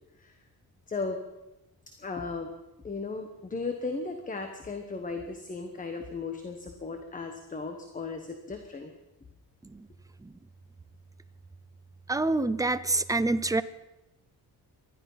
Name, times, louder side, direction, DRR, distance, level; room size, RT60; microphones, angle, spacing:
voice 1, 0.9-1.2 2.0-2.5 2.8-8.9, left 4 dB, 20° left, 6 dB, 1.2 m, -36 dB
voice 2, 12.1-13.6, right 2 dB, 10° right, 13 dB, 0.5 m, -27 dB
19.5 x 13.0 x 5.7 m, 0.97 s
wide cardioid pair, 160°, 37 cm